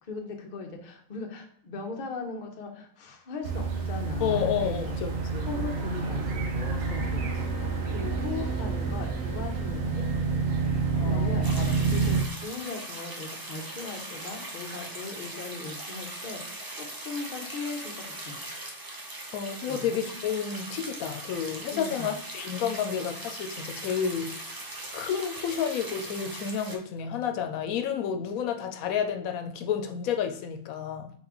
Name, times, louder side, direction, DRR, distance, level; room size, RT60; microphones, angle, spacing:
voice 1, 0.0-4.9 5.5-7.3 7.9-10.3 11.0-11.5 11.9-16.4 16.7-18.5 19.7-19.9 21.7-22.1, left 4 dB, 45° left, 3 dB, 0.7 m, -38 dB
sound 1, 3.4-12.2, right 4 dB, 75° right, 1.2 m, -28 dB
voice 2, 4.2-5.5 11.0-11.7 19.3-24.3 24.9-31.1, left 8 dB, 85° left, 6 dB, 1.0 m, -31 dB
sound 2, 11.4-26.8, right 1 dB, 30° right, 0.4 m, -40 dB
4.1 x 4.0 x 2.9 m, 0.63 s
omnidirectional pair, 1.4 m